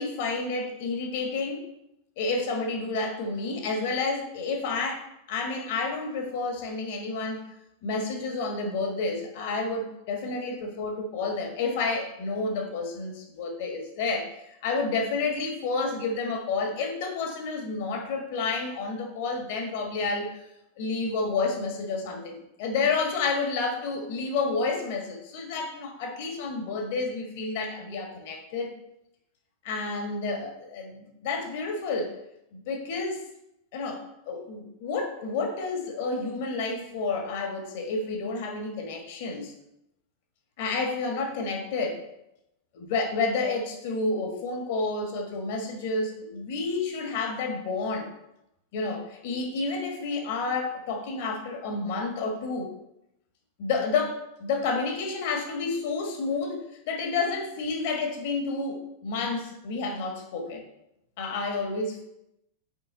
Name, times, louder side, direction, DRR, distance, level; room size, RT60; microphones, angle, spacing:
voice 1, 0.0-1.6 2.2-7.4 7.8-20.4 20.8-28.8 29.6-32.1 32.5-33.2 33.7-39.5 40.6-42.0 42.7-48.1 48.7-52.7 53.6-60.6 61.2-62.0, left 3 dB, 50° left, 3 dB, 1.6 m, -30 dB
7.2 x 4.9 x 4.0 m, 0.84 s
figure-of-eight pair, 90°, 0 cm